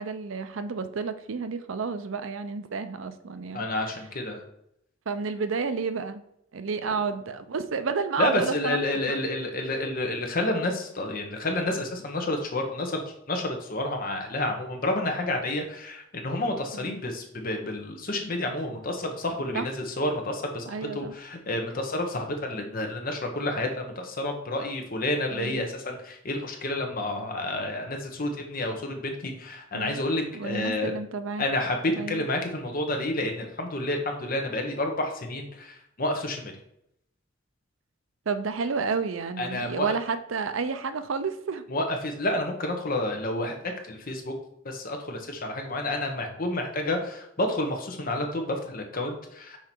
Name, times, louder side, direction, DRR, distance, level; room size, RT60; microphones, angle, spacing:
voice 1, 0.0-3.6 5.1-6.2 6.5-8.8 9.1-9.2 16.7-17.0 19.5-19.7 20.7-21.1 25.3-25.7 29.7-30.0 30.3-31.4 32.0-32.2 38.3-41.6, right 5 dB, 75° right, 11 dB, 0.5 m, -31 dB
voice 2, 3.5-4.4 8.2-30.9 31.4-36.5 39.4-39.9 41.7-44.3 44.6-49.6, left 1 dB, 45° left, 3 dB, 1.1 m, -30 dB
5.7 x 4.8 x 4.5 m, 0.76 s
head